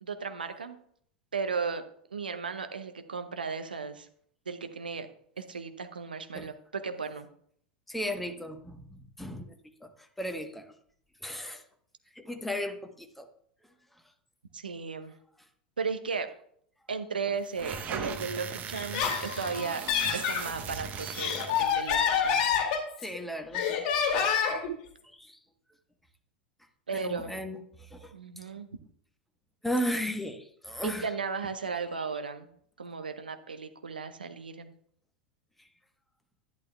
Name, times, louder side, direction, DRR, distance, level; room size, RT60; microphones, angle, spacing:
voice 1, 0.0-0.8 1.3-1.8 2.1-4.1 4.5-5.1 5.4-7.3 14.5-15.1 15.8-16.3 16.9-19.8 20.1-22.6 26.9-27.3 28.1-28.7 30.8-32.5 32.8-34.7, right 5 dB, 80° right, 9 dB, 0.8 m, -35 dB
voice 2, 7.9-10.7 11.2-11.6 12.1-13.3 23.0-23.8 24.4-24.6 25.0-25.4 26.9-28.1 29.6-31.1 31.9-32.0, equal, 5° left, 5 dB, 1.1 m, -36 dB
sound 1, 17.4-21.9, right 6 dB, 35° right, 0.9 m, -38 dB
Laughter, 18.7-20.4 21.0-23.2 23.5-24.7, left 7 dB, 45° left, 2.3 m, -28 dB
11.0 x 10.5 x 2.3 m, 0.64 s
figure-of-eight pair, 85°, 5 cm